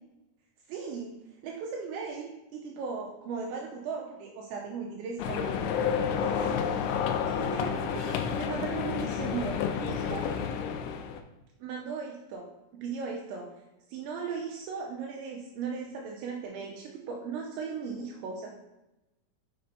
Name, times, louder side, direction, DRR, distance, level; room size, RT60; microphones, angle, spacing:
voice 1, 0.7-1.1 1.4-5.5 6.2-6.9 7.3-10.3 11.6-12.5 12.7-13.5 13.9-18.5, right 5 dB, 90° right, -1 dB, 2.6 m, -37 dB
sound 1, 5.2-11.2, left 7 dB, 85° left, 2.7 m, -30 dB
6.7 x 5.3 x 2.7 m, 0.99 s
omnidirectional pair, 5.8 m